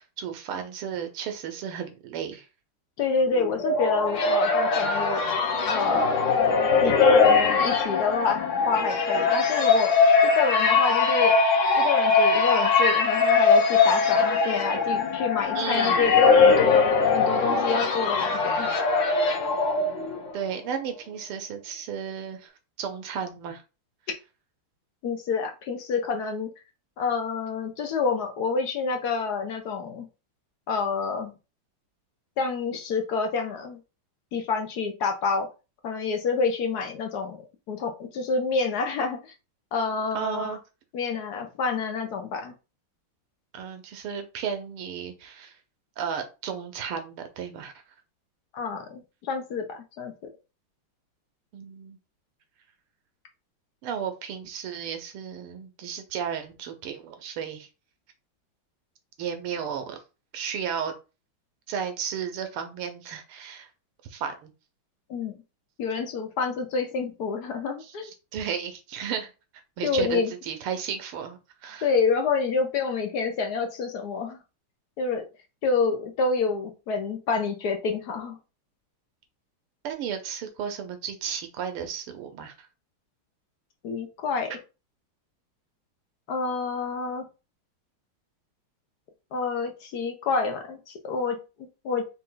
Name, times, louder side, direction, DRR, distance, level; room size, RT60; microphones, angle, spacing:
voice 1, 0.0-2.5 15.6-16.1 20.3-22.5 22.8-23.6 40.2-40.6 43.5-45.5 46.0-47.7 51.5-52.0 53.8-57.7 59.2-60.0 60.3-60.9 61.7-63.7 64.1-64.5 67.8-67.9 68.3-69.3 69.8-71.9 79.8-82.7, right 7 dB, 85° right, 7 dB, 1.8 m, -33 dB
voice 2, 3.0-5.2 5.7-6.2 6.8-9.9 10.3-11.4 11.7-16.9 17.1-18.7 25.0-26.5 27.0-30.1 30.7-31.3 32.4-33.8 34.3-35.5 35.8-37.4 37.7-39.3 39.7-40.6 40.9-42.5 48.5-50.1 65.1-65.3 65.8-68.1 69.8-70.3 71.8-74.4 75.0-75.3 75.6-78.4 83.8-84.5 86.3-87.2 89.3-91.4 91.8-92.0, left 4 dB, 60° left, 4 dB, 1.1 m, -28 dB
sound 1, 3.3-20.3, left 4 dB, 80° left, 0.7 m, -21 dB
4.4 x 2.8 x 3.8 m, 0.30 s
omnidirectional pair, 2.4 m